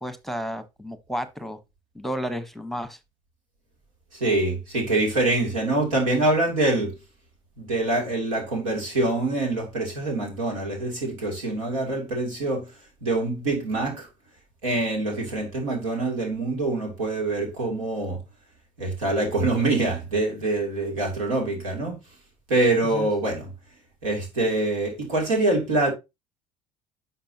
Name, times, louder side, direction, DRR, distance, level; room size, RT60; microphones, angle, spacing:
voice 1, 0.0-1.6 1.9-3.0 22.9-23.1, equal, ahead, 1.0 m, -32 dB
voice 2, 4.1-7.0 7.6-12.7 13.0-14.1 14.6-18.2 18.8-22.0 22.5-23.5 24.0-25.9, right 2 dB, 85° right, 2.9 m, -25 dB
10.0 x 5.7 x 2.8 m
hypercardioid pair, 65°, 16 cm